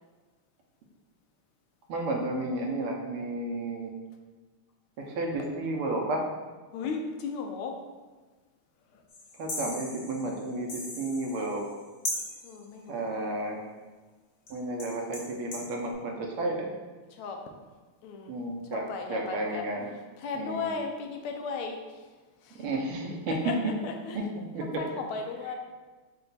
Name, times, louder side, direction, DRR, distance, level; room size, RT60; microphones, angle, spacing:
voice 1, 1.9-3.9 5.0-6.2 9.4-11.7 12.9-13.6 14.5-16.7 18.3-18.8 19.1-19.9 20.3-20.7 22.6-23.4 24.1-24.2 24.5-24.8, right 2 dB, 80° right, 0 dB, 1.6 m, -32 dB
voice 2, 6.7-7.8 8.9-9.0 12.4-13.2 17.1-17.5 18.0-18.4 18.7-19.7 20.2-22.1 22.4-22.6 23.3-24.2 24.8-25.5, left 4 dB, 80° left, 3 dB, 1.4 m, -36 dB
sound 1, 9.1-11.8 12.0-12.6 14.5-14.6 14.8-15.7, left 1 dB, 50° left, 1.2 m, -38 dB
5.8 x 2.3 x 3.9 m, 1.3 s
omnidirectional pair, 2.4 m